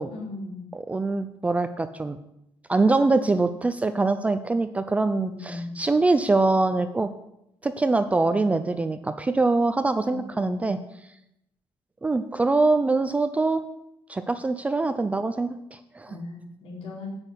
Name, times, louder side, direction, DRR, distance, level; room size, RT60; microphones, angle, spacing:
voice 1, 0.1-0.7 5.1-5.7 10.0-10.7 16.1-17.1, left 2 dB, 80° left, -4 dB, 4.6 m, -38 dB
voice 2, 0.7-2.2 2.7-7.1 7.6-10.8 12.0-13.6 14.1-16.2, right 3 dB, 15° right, 10 dB, 0.4 m, -24 dB
9.7 x 6.1 x 8.2 m, 0.83 s
cardioid pair, 150°, 10 cm